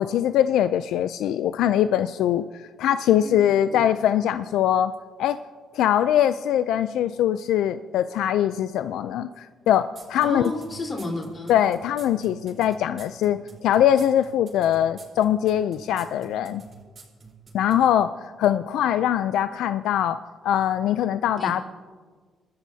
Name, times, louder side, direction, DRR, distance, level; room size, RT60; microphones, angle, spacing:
voice 1, 0.0-4.9 5.2-5.4 5.7-10.4 11.5-16.6 17.5-18.1 18.4-20.2 20.4-21.6, left 10 dB, 85° left, 12 dB, 0.4 m, -22 dB
sound 1, 10.0-17.8, right 4 dB, 45° right, 4.4 m, -46 dB
voice 2, 10.2-11.6 21.4-21.6, left 2 dB, 35° left, 0 dB, 4.0 m, -32 dB
28.0 x 13.5 x 2.8 m, 1.5 s
cardioid pair, 90°, 0 cm